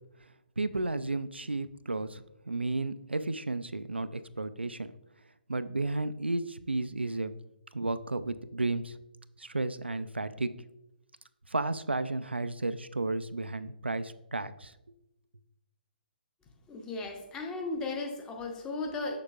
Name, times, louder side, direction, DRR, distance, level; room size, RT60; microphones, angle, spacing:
voice 1, 0.6-4.9 5.5-7.3 7.7-9.0 9.4-10.5 11.5-14.7, right 2 dB, 85° right, 12 dB, 0.3 m, -33 dB
voice 2, 16.7-19.2, left 3 dB, 15° left, 2 dB, 0.8 m, -36 dB
6.5 x 6.3 x 2.4 m, 0.86 s
figure-of-eight pair, 130°, 6 cm